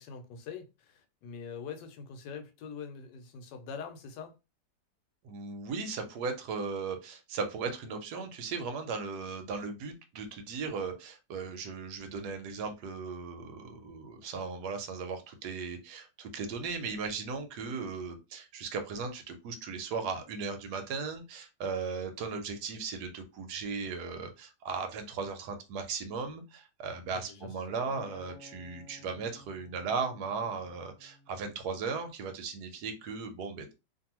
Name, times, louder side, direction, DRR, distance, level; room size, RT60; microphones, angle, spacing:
voice 1, 0.0-4.3 27.1-27.5 27.8-28.0, left 6 dB, 85° left, 1.3 m, -44 dB
voice 2, 5.2-33.7, right 5 dB, 80° right, 1.2 m, -37 dB
Acoustic guitar, 27.9-32.2 32.8-33.1, left 2 dB, 25° left, 0.9 m, -55 dB
2.6 x 2.6 x 2.9 m
omnidirectional pair, 1.8 m